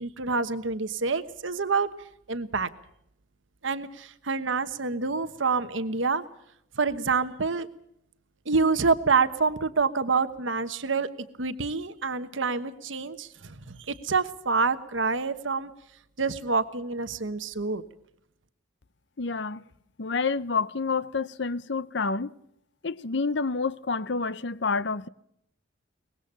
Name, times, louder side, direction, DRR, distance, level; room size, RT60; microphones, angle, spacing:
voice 1, 0.0-1.9 2.3-2.7 3.6-6.2 6.8-7.7 8.4-11.1 11.4-15.7 16.2-17.8, right 4 dB, 75° right, 1.2 m, -27 dB
voice 2, 19.2-19.6 20.0-22.3 22.8-25.1, left 4 dB, 60° left, 0.8 m, -28 dB
24.0 x 20.0 x 6.8 m
head